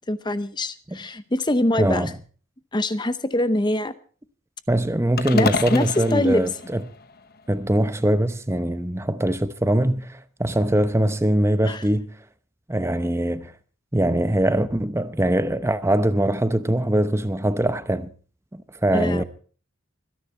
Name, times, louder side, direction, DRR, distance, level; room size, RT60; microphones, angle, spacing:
voice 1, 0.1-2.1 2.7-3.9 5.3-6.4 11.6-11.8 18.9-19.2, left 1 dB, 20° left, 0.7 m, -24 dB
voice 2, 1.8-2.1 4.7-6.8 7.5-12.1 12.7-13.5 13.9-18.1 18.5-19.2, right 1 dB, 10° right, 0.8 m, -22 dB
sound 1, 5.2-7.5, left 4 dB, 45° left, 1.0 m, -29 dB
25.0 x 10.5 x 4.4 m
head